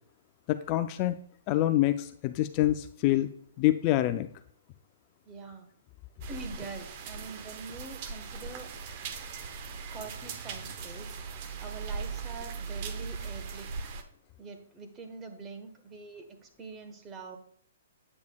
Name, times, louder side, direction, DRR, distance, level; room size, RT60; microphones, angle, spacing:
voice 1, 0.5-1.1 1.5-3.3 3.6-4.3, left 15 dB, 35° left, 10 dB, 0.4 m, -26 dB
voice 2, 5.2-5.7 6.3-8.7 9.9-11.1 11.6-13.7 14.4-17.4, right 4 dB, 20° right, 5 dB, 1.2 m, -44 dB
sound 1, 6.2-14.0, right 5 dB, 40° right, 0.8 m, -39 dB
8.5 x 8.3 x 2.3 m, 0.64 s
hypercardioid pair, 145°, 0 cm